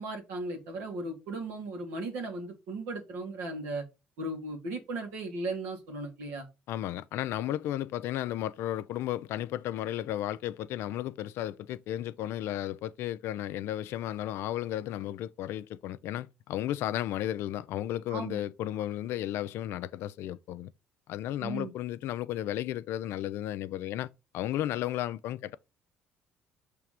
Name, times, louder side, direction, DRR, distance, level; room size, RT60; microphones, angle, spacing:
voice 1, 0.0-3.8 4.2-6.5 18.1-18.4 21.4-21.7, right 2 dB, 85° right, 1.8 m, -36 dB
voice 2, 6.7-20.7 21.1-24.1 24.3-25.6, left 13 dB, 70° left, 0.4 m, -34 dB
5.8 x 3.4 x 4.9 m
supercardioid pair, 85°, 4 cm